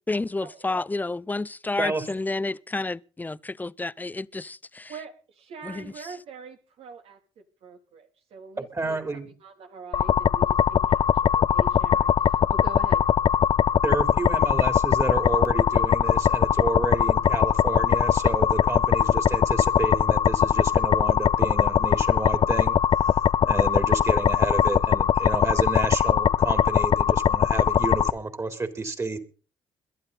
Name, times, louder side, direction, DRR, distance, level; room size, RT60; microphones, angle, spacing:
voice 1, 0.0-4.9 5.6-5.9, left 2 dB, 15° left, 0.7 m, -30 dB
voice 2, 4.9-7.2 7.6-9.0 9.4-13.1, right 5 dB, 70° right, 3.3 m, -43 dB
voice 3, 8.6-9.3 13.8-22.8 23.4-29.2, right 3 dB, 30° right, 3.9 m, -30 dB
sound 1, 9.9-28.1, left 8 dB, 50° left, 0.8 m, -21 dB
22.0 x 12.0 x 4.2 m
supercardioid pair, 55°, 10 cm